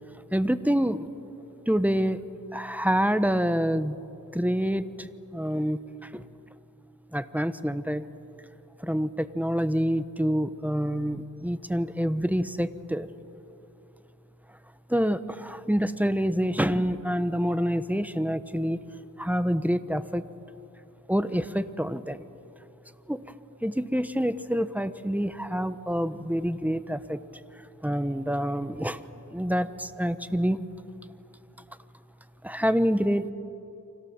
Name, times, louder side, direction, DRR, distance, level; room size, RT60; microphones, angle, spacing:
voice 1, 0.3-1.1 1.7-2.2 2.5-3.9 4.3-5.1 5.3-5.8 6.1-6.2 7.1-8.0 8.8-13.1 14.9-18.8 19.2-20.2 21.1-22.2 23.1-23.2 23.6-27.2 27.8-29.0 29.3-30.6 32.4-33.3, equal, 5° right, 12 dB, 1.1 m, -27 dB
30.0 x 25.0 x 7.3 m, 2.9 s
wide cardioid pair, 55°, 36 cm